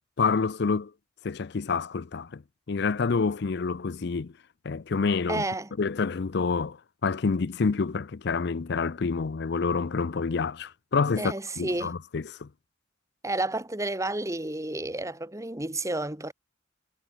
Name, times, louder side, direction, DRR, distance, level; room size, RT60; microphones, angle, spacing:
voice 1, 0.2-0.9 1.2-2.4 2.7-4.3 4.6-5.4 5.8-12.5, left 4 dB, 65° left, 0.5 m, -28 dB
voice 2, 5.3-5.7 11.2-11.9 13.2-16.3, right 2 dB, 15° right, 1.7 m, -31 dB
head